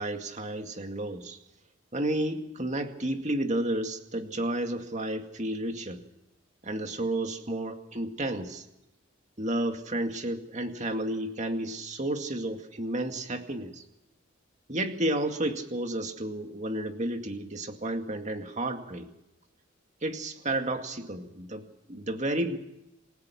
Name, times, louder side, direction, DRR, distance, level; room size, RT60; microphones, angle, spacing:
voice 1, 0.0-1.4 1.9-6.0 6.6-8.6 9.4-13.8 14.7-19.1 20.0-22.6, right 1 dB, 35° right, 5 dB, 2.2 m, -31 dB
28.5 x 16.5 x 6.0 m, 0.90 s
head